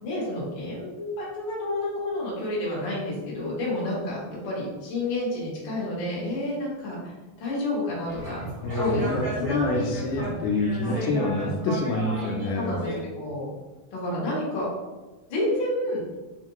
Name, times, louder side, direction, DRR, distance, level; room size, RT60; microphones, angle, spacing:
voice 1, 0.0-7.1 7.4-8.4 8.7-10.4 10.8-11.0 12.5-13.5 13.9-14.7 15.3-16.0, left 1 dB, 50° left, -6 dB, 1.6 m, -30 dB
sound 1, 8.1-13.0, right 1 dB, 60° right, 0.9 m, -34 dB
voice 2, 8.6-12.7, left 2 dB, 85° left, 1 dB, 1.9 m, -27 dB
4.5 x 2.4 x 2.9 m, 1.2 s
omnidirectional pair, 3.3 m